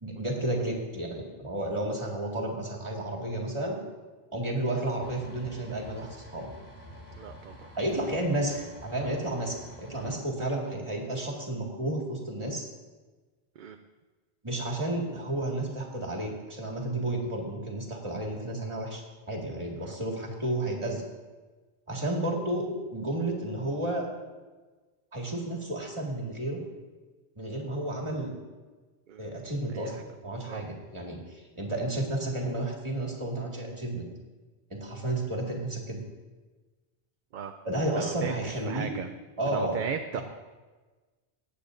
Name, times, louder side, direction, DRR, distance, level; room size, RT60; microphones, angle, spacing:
voice 1, 0.0-3.8 4.3-6.5 7.7-12.7 14.4-19.0 19.3-21.0 21.9-24.1 25.1-26.6 27.4-28.3 29.2-34.1 34.7-36.0 37.6-38.9 39.4-39.8 40.1-40.2, right 1 dB, 30° right, -1 dB, 2.0 m, -32 dB
sound 1, 5.0-10.2, left 1 dB, 85° left, 2.0 m, -48 dB
voice 2, 7.2-7.7 13.6-13.8 19.8-19.9 29.1-29.2 29.7-30.0 30.5-30.6 37.3-39.1 39.5-40.2, right 7 dB, 60° right, 7 dB, 0.6 m, -37 dB
20.5 x 8.5 x 2.6 m, 1.3 s
omnidirectional pair, 1.0 m